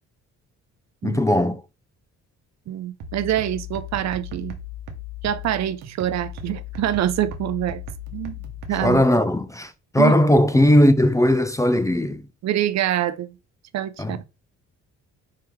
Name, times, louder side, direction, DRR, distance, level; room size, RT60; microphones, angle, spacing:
voice 1, 1.0-1.6 8.8-12.2 14.0-14.2, left 1 dB, 10° left, 0.4 m, -18 dB
voice 2, 2.7-4.5 5.2-7.8 8.1-8.4 8.7-9.0 10.0-10.1 12.4-13.3 13.7-14.2, right 12 dB, 65° right, 0.5 m, -25 dB
sound 1, 3.0-9.0, left 5 dB, 80° right, 0.9 m, -36 dB
4.5 x 2.9 x 3.5 m
cardioid pair, 90°, 30 cm